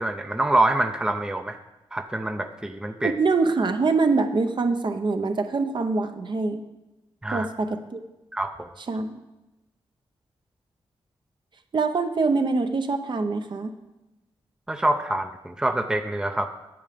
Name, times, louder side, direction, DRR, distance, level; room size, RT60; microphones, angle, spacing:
voice 1, 0.0-1.6 1.9-3.2 7.2-7.5 8.3-8.7 14.7-16.5, right 1 dB, 5° right, 7 dB, 0.6 m, -25 dB
voice 2, 3.0-6.6 7.3-8.0 8.9-9.1 11.7-13.7, right 3 dB, 50° right, 6 dB, 0.8 m, -24 dB
8.8 x 7.4 x 5.1 m, 1.0 s
wide cardioid pair, 85°, 10 cm